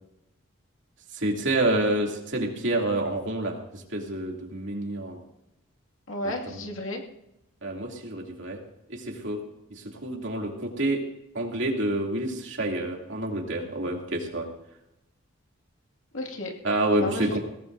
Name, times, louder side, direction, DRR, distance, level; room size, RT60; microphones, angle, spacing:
voice 1, 1.1-5.2 6.5-6.6 7.6-8.6 8.9-9.4 9.7-11.0 11.3-14.5 16.6-17.4, right 1 dB, 65° right, 0 dB, 2.7 m, -28 dB
voice 2, 6.1-7.0 16.1-16.5 16.9-17.4, left 1 dB, 85° left, 2 dB, 2.2 m, -33 dB
21.5 x 17.5 x 2.7 m, 0.87 s
head